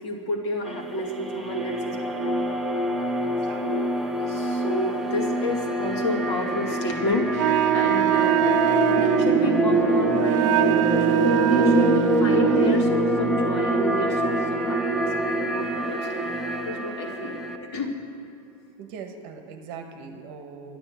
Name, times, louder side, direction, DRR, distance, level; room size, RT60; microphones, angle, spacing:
voice 1, 0.0-2.3 3.6-3.8 4.2-8.6 8.9-16.2 16.7-17.4 17.7-17.9, left 1 dB, 55° left, 0 dB, 2.2 m, -30 dB
sound 1, 0.7-17.6, right 1 dB, ahead, 0.4 m, -25 dB
voice 2, 3.2-4.0 18.8-20.8, right 5 dB, 35° right, 5 dB, 1.1 m, -41 dB
Wind instrument woodwind instrument, 7.3-12.9, right 15 dB, 65° right, 0.4 m, -23 dB
12.5 x 9.7 x 8.1 m, 2.6 s
supercardioid pair, 175°, 17 cm